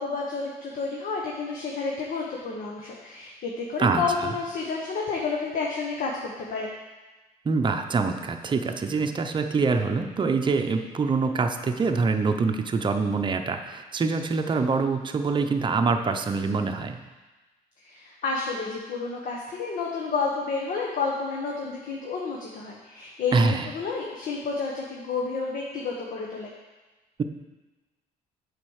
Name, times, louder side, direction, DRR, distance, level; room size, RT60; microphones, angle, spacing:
voice 1, 0.0-6.7 17.8-26.5, left 4 dB, 55° left, -1 dB, 1.2 m, -30 dB
voice 2, 3.8-4.3 7.4-17.0 23.3-23.7, right 4 dB, 30° right, 5 dB, 0.8 m, -25 dB
7.5 x 5.2 x 6.5 m, 1.2 s
cardioid pair, 110°, 17 cm